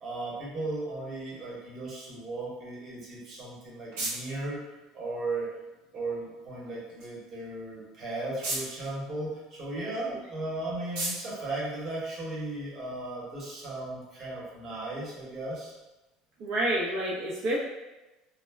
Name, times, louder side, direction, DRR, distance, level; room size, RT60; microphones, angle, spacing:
voice 1, 0.0-4.6 4.9-5.5 5.9-15.7, right 2 dB, 35° right, -4 dB, 1.0 m, -36 dB
sound 1, 3.2-12.6, right 2 dB, 80° right, 0.9 m, -41 dB
voice 2, 16.4-17.6, right 1 dB, 65° right, -6 dB, 0.5 m, -28 dB
2.2 x 2.1 x 3.3 m, 1.0 s
supercardioid pair, 120°, 0 cm